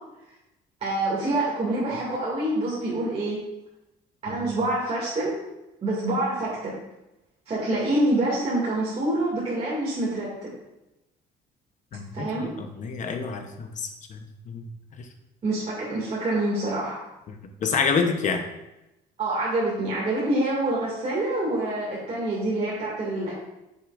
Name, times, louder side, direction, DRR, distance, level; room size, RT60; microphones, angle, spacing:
voice 1, 0.8-3.4 4.2-5.4 5.8-6.7 7.5-10.5 12.1-12.5 15.4-17.0 19.2-23.3, right 1 dB, 35° right, -7 dB, 2.4 m, -26 dB
voice 2, 11.9-14.7 15.0-15.1 17.3-18.4, left 5 dB, 45° left, 6 dB, 1.0 m, -28 dB
8.0 x 6.7 x 2.6 m, 0.94 s
cardioid pair, 110°, 17 cm